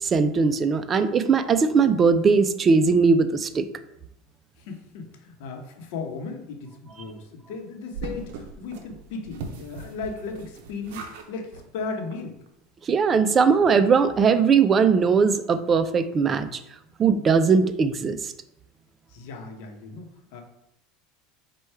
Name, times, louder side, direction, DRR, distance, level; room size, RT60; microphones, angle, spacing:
voice 1, 0.0-3.7 12.8-16.6 17.0-18.3, right 5 dB, 30° right, 11 dB, 0.4 m, -20 dB
voice 2, 4.7-12.4 19.1-20.4, left 4 dB, 70° left, 3 dB, 0.8 m, -36 dB
sound 1, 7.9-11.3 11.5-11.7 12.1-12.2 12.5-12.6, right 4 dB, 75° right, 0.6 m, -39 dB
4.5 x 2.3 x 4.4 m, 0.79 s
supercardioid pair, 100°, 0 cm